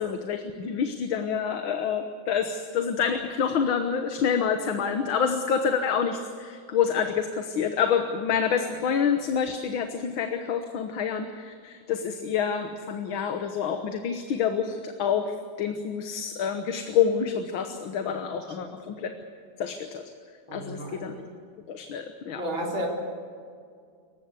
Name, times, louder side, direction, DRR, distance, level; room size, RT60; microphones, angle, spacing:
voice 1, 0.0-19.2 19.6-20.0 20.5-21.1 21.7-22.4, left 7 dB, 85° left, 6 dB, 2.0 m, -27 dB
voice 2, 20.5-21.2 22.4-22.9, equal, 85° right, -2 dB, 4.8 m, -33 dB
26.5 x 16.0 x 8.2 m, 2.2 s
omnidirectional pair, 2.1 m